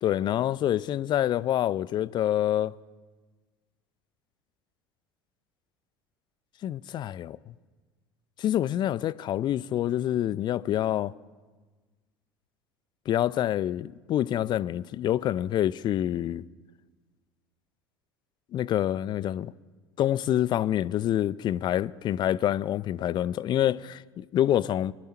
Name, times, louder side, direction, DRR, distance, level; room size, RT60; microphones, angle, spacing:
voice 1, 0.0-2.8 6.6-7.4 8.4-11.1 13.1-16.5 18.5-19.5 20.0-24.9, left 12 dB, 40° left, 0.4 m, -27 dB
20.5 x 12.5 x 4.3 m
figure-of-eight pair, 70°, 12 cm